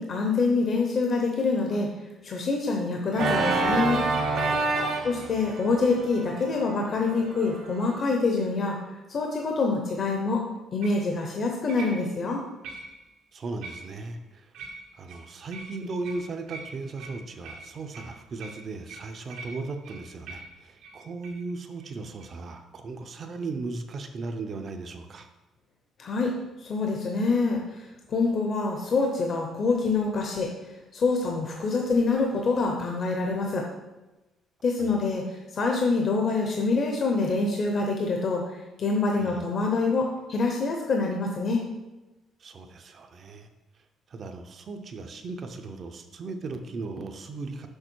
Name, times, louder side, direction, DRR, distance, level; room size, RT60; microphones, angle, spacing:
voice 1, 0.0-1.9 2.2-4.1 5.0-8.8 9.1-10.4 10.7-12.4 26.0-26.3 26.6-27.6 28.1-30.5 30.9-33.7 34.6-41.6, left 3 dB, 35° left, 1 dB, 0.8 m, -26 dB
Organ, 3.1-8.0, right 3 dB, 55° right, 1.1 m, -28 dB
sound 1, 3.1-5.6 6.2-6.6 10.8-11.1 11.7-12.3 12.6-13.1 13.6-14.2 14.5-21.4 21.8-21.9 22.2-22.3, right 3 dB, 90° right, 1.5 m, -45 dB
voice 2, 4.7-5.2 13.3-14.5 15.0-25.3 34.8-34.9 39.2-39.4 42.4-43.5 44.1-47.7, right 3 dB, 35° right, 6 dB, 0.6 m, -37 dB
6.6 x 5.1 x 4.5 m, 1.1 s
cardioid pair, 170°, 0 cm